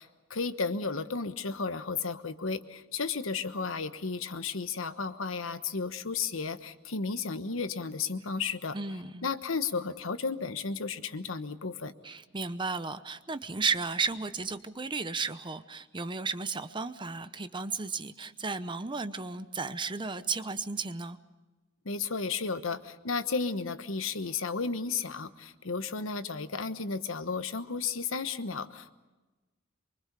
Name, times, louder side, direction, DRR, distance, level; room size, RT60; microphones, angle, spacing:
voice 1, 0.0-8.8 9.2-11.9 21.8-28.9, left 4 dB, 75° left, 11 dB, 1.2 m, -33 dB
voice 2, 8.7-9.3 12.0-21.2, right 4 dB, 25° right, 11 dB, 0.8 m, -34 dB
24.5 x 24.0 x 6.8 m, 1.2 s
head